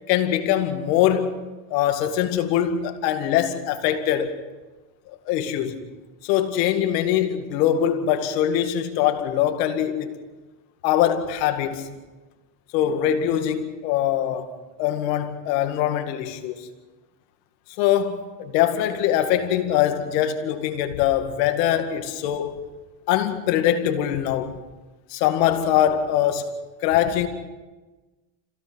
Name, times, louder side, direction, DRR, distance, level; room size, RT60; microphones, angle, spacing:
voice 1, 0.1-1.4 1.7-4.4 5.1-5.9 6.2-10.2 10.8-12.0 12.7-14.5 14.8-16.7 17.8-22.6 23.1-24.5 25.1-26.5 26.8-27.3, left 10 dB, 90° left, 2.2 m, -23 dB
27.0 x 16.5 x 6.3 m
supercardioid pair, 105°, 48 cm